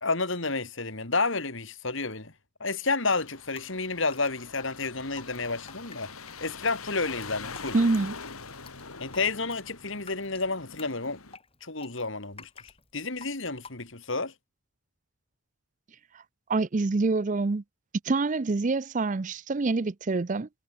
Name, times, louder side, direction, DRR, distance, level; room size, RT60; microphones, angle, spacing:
voice 1, 0.0-2.3 2.6-6.1 6.4-7.8 9.0-11.2 11.6-14.3, left 3 dB, 60° left, 2.8 m, -30 dB
sound 1, 3.2-11.4, left 4 dB, 90° left, 3.9 m, -43 dB
Drip, 3.2-14.2, left 5 dB, 25° left, 3.2 m, -51 dB
voice 2, 7.7-8.2 16.1-16.2 16.5-17.6 18.0-20.5, right 3 dB, 35° right, 0.5 m, -26 dB
head